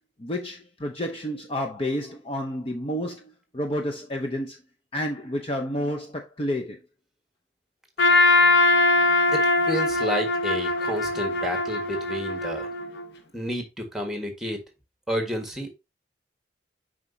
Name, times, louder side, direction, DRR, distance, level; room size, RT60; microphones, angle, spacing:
voice 1, 0.2-4.6 4.9-6.8, equal, 30° left, 0.8 m, -30 dB
Trumpet, 8.0-13.1, left 3 dB, 65° left, 1.1 m, -22 dB
voice 2, 9.3-12.7 13.3-14.6 15.1-15.7, equal, ahead, 1.7 m, -30 dB
7.4 x 5.1 x 2.7 m
head